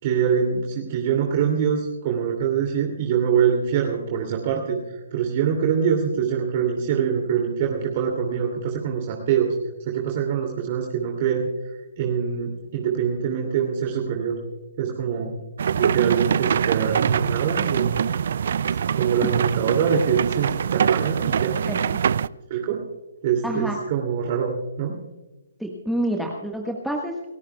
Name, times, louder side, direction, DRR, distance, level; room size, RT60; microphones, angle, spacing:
voice 1, 0.0-9.5 9.9-11.5 12.0-14.4 14.8-15.4 15.7-18.1 18.9-21.6 22.5-22.8 23.2-25.0, right 7 dB, 40° right, 1 dB, 2.7 m, -24 dB
sound 1, 15.6-22.3, right 7 dB, 60° right, 0.4 m, -23 dB
voice 2, 23.4-23.8 25.6-27.3, right 1 dB, ahead, -1 dB, 1.5 m, -27 dB
29.0 x 15.5 x 2.3 m, 1.1 s
figure-of-eight pair, 135°, 0 cm